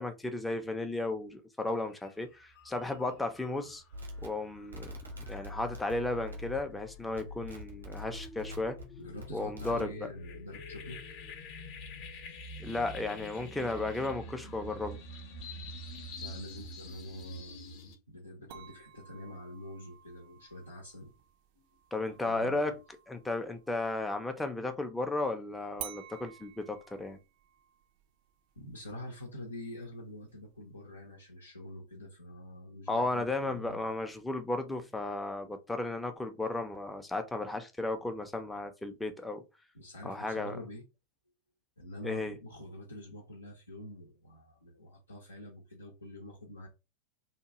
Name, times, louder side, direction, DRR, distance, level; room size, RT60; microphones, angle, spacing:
voice 1, 0.0-3.8 4.2-5.0 5.3-8.8 9.3-10.1 12.6-15.0 21.9-22.8 23.1-27.2 32.9-39.4 40.0-40.6 42.0-42.3, left 2 dB, 5° left, 0.5 m, -34 dB
sound 1, 1.9-2.1 2.5-18.0, left 1 dB, 45° left, 0.8 m, -47 dB
sound 2, 3.9-6.8 7.1-8.8 9.2-9.9, left 1 dB, 80° right, 0.9 m, -44 dB
voice 2, 9.0-11.0 16.2-17.6 18.1-21.1 21.6-21.7 22.2-22.8 28.6-33.9 39.7-40.8 41.8-46.7, left 1 dB, 80° left, 0.6 m, -46 dB
sound 3, 18.5-24.1 25.8-30.8, right 11 dB, 50° right, 0.4 m, -52 dB
2.8 x 2.2 x 2.8 m
figure-of-eight pair, 90°, 0 cm